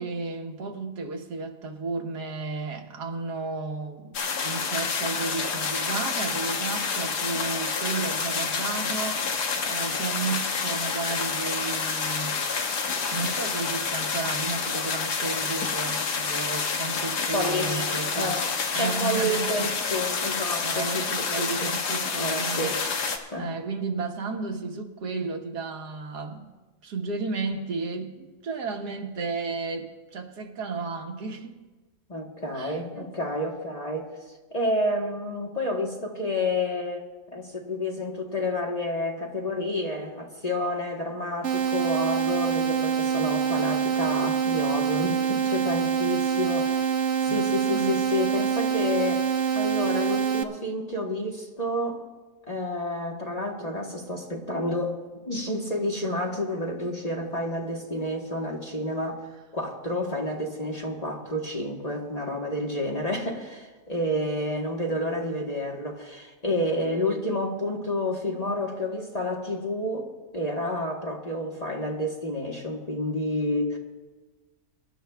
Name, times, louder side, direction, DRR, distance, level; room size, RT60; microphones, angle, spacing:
voice 1, 0.0-4.2 4.4-9.3 9.6-12.4 13.1-18.3 18.7-19.7 20.6-22.8 23.4-26.5 26.8-31.5 32.5-33.1 47.3-48.1, right 4 dB, 85° right, 1.8 m, -33 dB
sound 1, 4.1-23.2, left 5 dB, 80° left, 1.7 m, -28 dB
voice 2, 17.3-21.7 22.2-22.8 23.3-23.5 32.1-34.2 34.5-46.8 47.2-49.3 49.5-52.0 52.5-59.3 59.5-73.8, left 1 dB, 25° left, 1.2 m, -30 dB
sound 2, 41.4-50.4, right 7 dB, 55° right, 1.0 m, -25 dB
25.5 x 12.0 x 2.3 m
omnidirectional pair, 1.7 m